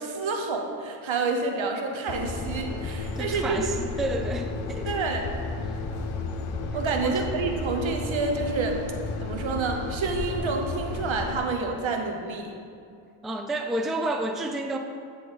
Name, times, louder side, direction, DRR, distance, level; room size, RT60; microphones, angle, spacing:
voice 1, 0.0-3.7 4.9-5.2 6.7-8.8 9.2-12.6, right 4 dB, 70° right, 2 dB, 0.9 m, -28 dB
sound 1, 2.1-11.4, left 3 dB, 80° left, 0.7 m, -33 dB
voice 2, 3.2-4.9 7.0-7.2 13.2-14.8, right 1 dB, ahead, 5 dB, 0.3 m, -30 dB
9.3 x 3.4 x 4.0 m, 2.4 s
cardioid pair, 50°, 49 cm